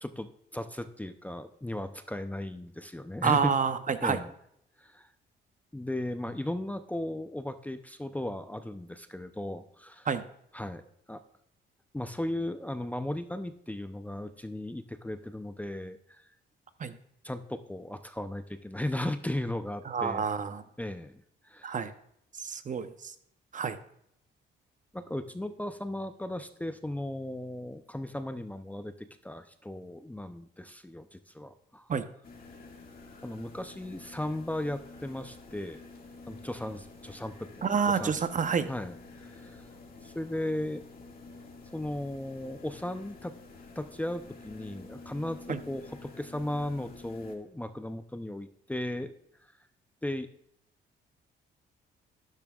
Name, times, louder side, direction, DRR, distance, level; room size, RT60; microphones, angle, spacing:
voice 1, 0.0-3.5 4.0-4.3 4.8-5.1 5.7-10.1 10.5-10.8 11.1-11.2 11.9-16.3 17.2-20.3 20.8-21.7 24.9-31.9 33.2-35.9 36.3-38.1 38.7-39.6 40.0-40.8 41.7-43.3 43.8-49.1 50.0-50.3, left 1 dB, 5° left, 9 dB, 0.6 m, -36 dB
voice 2, 3.2-4.2 10.0-10.2 16.8-17.0 19.8-20.6 21.6-21.9 22.3-23.1 23.5-23.8 31.9-32.0 37.6-38.7 45.5-45.6, right 6 dB, 40° right, 10 dB, 0.8 m, -28 dB
sound 1, 32.2-47.4, left 3 dB, 50° left, 2.0 m, -49 dB
12.0 x 10.5 x 2.4 m, 0.73 s
cardioid pair, 90°, 20 cm